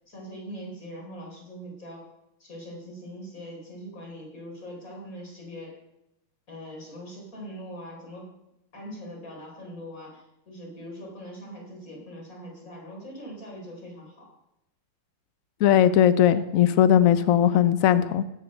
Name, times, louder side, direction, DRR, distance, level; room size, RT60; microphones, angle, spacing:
voice 1, 0.1-2.1 2.4-5.8 6.5-8.3 8.7-14.3 17.0-17.3, equal, 40° left, -2 dB, 4.6 m, -42 dB
voice 2, 15.6-18.2, left 10 dB, 85° left, 13 dB, 0.7 m, -19 dB
17.0 x 6.6 x 6.6 m, 0.87 s
omnidirectional pair, 2.3 m